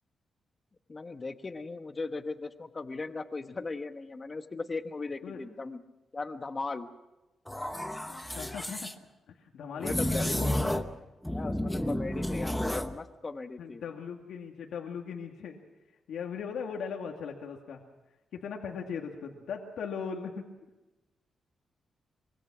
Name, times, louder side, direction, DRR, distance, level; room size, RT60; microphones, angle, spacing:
voice 1, 0.9-5.8 6.1-6.9 9.7-10.2 11.3-13.8, left 3 dB, 25° left, 8 dB, 1.2 m, -38 dB
sound 1, 7.5-8.9 9.8-11.0 11.2-12.9, left 1 dB, 5° left, 0.9 m, -31 dB
voice 2, 8.1-8.9 9.3-10.9 13.6-15.6 16.1-17.8 18.3-20.4, left 6 dB, 80° left, 1 dB, 2.2 m, -39 dB
25.0 x 23.0 x 6.2 m, 1.0 s
wide cardioid pair, 165°, 0 cm